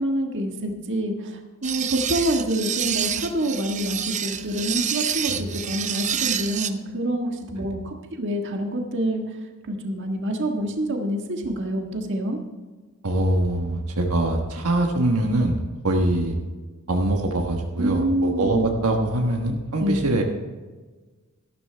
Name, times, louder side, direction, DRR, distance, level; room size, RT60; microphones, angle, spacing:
voice 1, 0.0-9.2 9.7-12.4 17.8-18.6 19.8-20.1, right 1 dB, 55° right, 2 dB, 1.6 m, -26 dB
sound 1, 1.6-6.7, right 9 dB, 35° right, 0.6 m, -28 dB
voice 2, 13.0-16.4 16.9-20.2, right 1 dB, 85° right, 2 dB, 1.3 m, -23 dB
13.5 x 12.0 x 3.4 m, 1.3 s
head